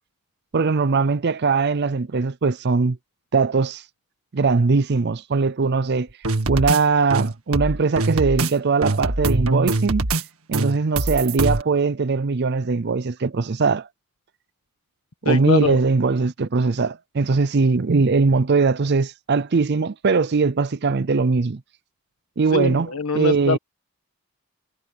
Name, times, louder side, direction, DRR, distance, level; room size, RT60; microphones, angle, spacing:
voice 1, 0.5-3.0 3.3-3.8 4.3-6.1 6.5-10.1 10.5-13.9 15.2-21.6 22.4-22.9 23.1-23.6, right 4 dB, 50° right, 0.5 m, -20 dB
sound 1, 6.2-6.8 7.1-8.5 8.8-10.2 10.5-11.6, right 2 dB, 80° right, 2.0 m, -23 dB
voice 2, 15.2-15.8 22.5-23.6, left 3 dB, 85° left, 1.3 m, -23 dB
head